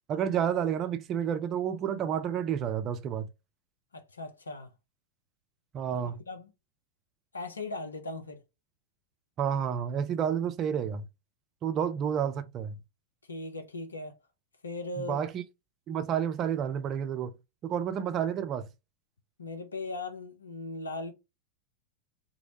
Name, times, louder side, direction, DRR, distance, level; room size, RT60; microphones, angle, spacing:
voice 1, 0.1-3.3 5.7-6.2 9.4-11.1 11.6-12.8 15.0-15.4 15.9-17.3 17.6-18.7, right 8 dB, 30° right, 0.3 m, -30 dB
voice 2, 3.9-4.7 6.3-6.5 7.3-8.4 13.3-14.1 14.6-15.2 19.4-21.1, left 2 dB, 75° left, 0.5 m, -38 dB
2.6 x 2.0 x 2.8 m
figure-of-eight pair, 90°, 0 cm